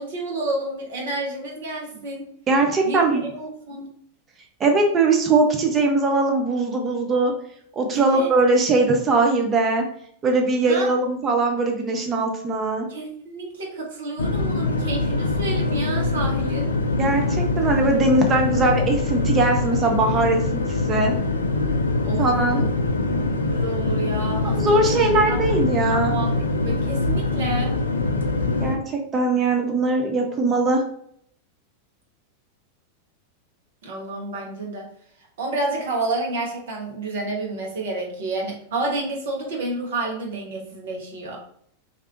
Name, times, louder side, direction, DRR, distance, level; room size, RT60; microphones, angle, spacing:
voice 1, 0.0-2.3 2.8-3.9 7.9-8.3 10.7-10.9 12.9-16.7 22.0-22.2 22.5-22.7 23.5-25.4 25.9-26.3 26.6-27.7 33.8-34.9 35.4-41.4, right 2 dB, 60° right, -1 dB, 1.0 m, -30 dB
voice 2, 2.5-3.2 4.6-7.3 7.8-9.8 10.2-12.9 17.0-21.1 22.2-22.7 24.4-26.2 28.6-30.8, right 3 dB, 25° right, 2 dB, 0.6 m, -21 dB
sound 1, 14.2-28.7, left 2 dB, 75° left, 0.4 m, -23 dB
3.2 x 2.5 x 3.0 m, 0.65 s
figure-of-eight pair, 90°, 0 cm